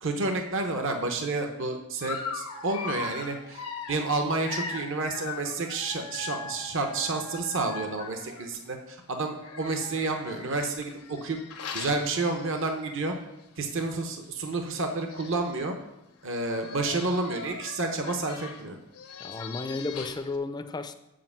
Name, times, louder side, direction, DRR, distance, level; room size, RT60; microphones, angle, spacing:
voice 1, 0.0-3.6 3.9-11.4 11.7-13.1 13.6-15.7 16.2-18.8, right 3 dB, 55° right, 4 dB, 0.8 m, -30 dB
Dog, 2.0-8.6 9.4-13.0 13.4-13.6 13.8-13.9 14.8-14.9 15.1-15.6 16.3-20.4, left 4 dB, 85° left, 0.9 m, -40 dB
voice 2, 19.2-20.9, left 3 dB, 20° left, 10 dB, 0.4 m, -33 dB
7.6 x 5.0 x 7.1 m, 0.93 s
head